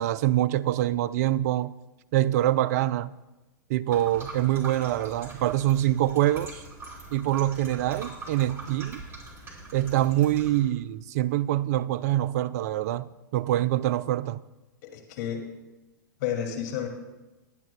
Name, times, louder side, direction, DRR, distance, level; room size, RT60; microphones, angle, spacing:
voice 1, 0.0-1.7 2.1-3.1 3.7-6.6 7.1-9.0 9.7-13.0 13.3-14.4, right 14 dB, 50° right, 0.4 m, -25 dB
sound 1, 3.9-10.6, right 3 dB, 20° right, 2.9 m, -43 dB
voice 2, 14.8-15.4 16.2-16.9, left 9 dB, 55° left, 2.3 m, -31 dB
21.0 x 8.9 x 2.2 m
figure-of-eight pair, 105°, 11 cm